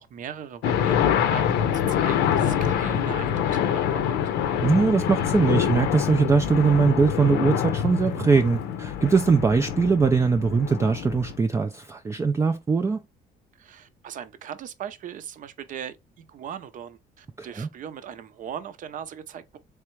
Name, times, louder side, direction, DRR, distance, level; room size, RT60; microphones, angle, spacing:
voice 1, 0.0-4.2 13.6-19.6, right 8 dB, 50° right, 0.6 m, -39 dB
sound 1, 0.6-11.4, left 9 dB, 85° left, 0.6 m, -25 dB
voice 2, 4.6-13.0 17.4-17.7, right 4 dB, 15° right, 0.3 m, -21 dB
3.5 x 3.3 x 3.1 m
cardioid pair, 110°, 17 cm